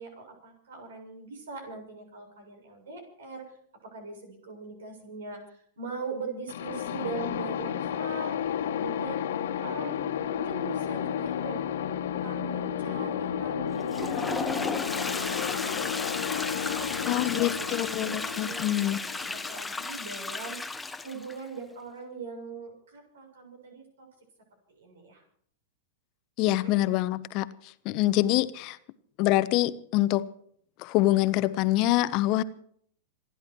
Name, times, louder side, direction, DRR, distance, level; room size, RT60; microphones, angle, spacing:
voice 1, 0.0-3.4 3.8-8.4 8.7-9.2 9.6-11.6 12.2-20.6 21.0-24.1 24.7-25.2 26.6-26.8, right 3 dB, 75° right, 7.3 m, -41 dB
sound 1, 6.5-20.2, left 9 dB, 70° left, 1.7 m, -32 dB
Toilet flush, 13.7-21.4, left 3 dB, 10° left, 1.2 m, -34 dB
voice 2, 17.1-19.0 26.4-27.5 27.8-28.8 29.2-30.3 30.8-32.4, left 16 dB, 45° left, 1.1 m, -25 dB
27.5 x 11.0 x 4.7 m
hypercardioid pair, 100°, 0 cm